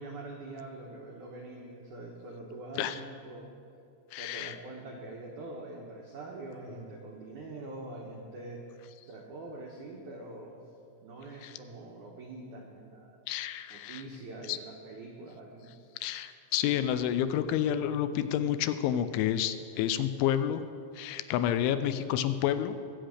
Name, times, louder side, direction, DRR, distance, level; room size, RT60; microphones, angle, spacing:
voice 1, 0.0-3.5 4.1-8.7 9.0-10.6 11.0-13.2 13.7-16.0, right 2 dB, 85° right, -1 dB, 1.7 m, -44 dB
voice 2, 4.1-4.6 11.4-11.5 13.3-14.0 14.5-14.6 16.0-20.6 20.9-22.8, left 10 dB, 85° left, 11 dB, 3.0 m, -29 dB
22.0 x 8.3 x 6.4 m, 2.5 s
omnidirectional pair, 5.5 m